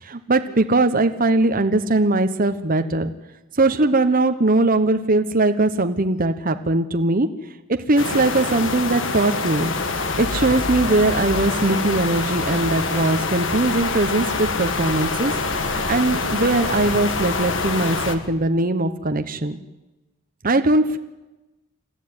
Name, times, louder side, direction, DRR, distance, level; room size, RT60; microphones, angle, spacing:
voice 1, 0.0-3.1 3.5-7.3 7.7-9.7 10.2-15.3 15.6-19.6 20.4-21.0, right 2 dB, 45° right, 7 dB, 1.1 m, -20 dB
sound 1, 8.0-18.1, left 3 dB, 65° left, 1.9 m, -25 dB
sound 2, 9.6-18.2, left 1 dB, 45° left, 4.4 m, -35 dB
28.5 x 14.0 x 9.8 m, 1.1 s
head